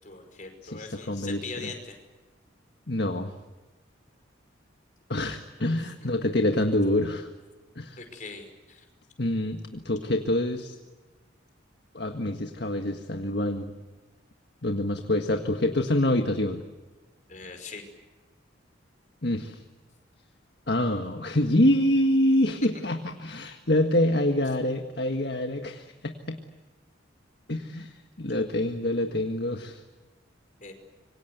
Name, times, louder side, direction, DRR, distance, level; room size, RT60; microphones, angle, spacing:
voice 1, 0.0-2.0 8.0-8.9 17.3-17.9 30.6-30.7, left 4 dB, 40° left, 5 dB, 5.3 m, -41 dB
voice 2, 0.6-1.7 2.9-3.3 5.1-7.3 7.7-8.0 9.2-10.7 11.9-13.7 14.6-16.6 19.2-19.6 20.7-26.4 27.5-29.8, left 1 dB, 55° left, 5 dB, 1.7 m, -26 dB
27.0 x 24.5 x 8.1 m, 1.2 s
head